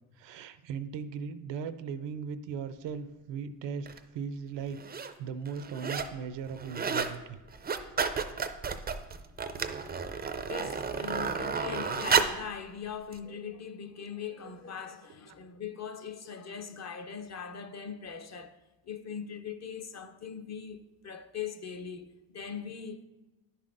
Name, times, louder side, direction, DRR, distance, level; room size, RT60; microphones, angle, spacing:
voice 1, 0.2-3.9 4.1-4.8 5.2-7.4 7.7-7.8, right 6 dB, 75° right, 0.6 m, -38 dB
sound 1, 3.9-4.0 4.7-5.1 5.5-6.2 6.5-7.2 7.5-12.5 13.1-13.2, right 5 dB, 25° right, 0.4 m, -31 dB
voice 2, 10.2-18.6 18.8-23.0, left 7 dB, 40° left, 0.6 m, -41 dB
10.0 x 5.6 x 2.5 m
cardioid pair, 70°, 44 cm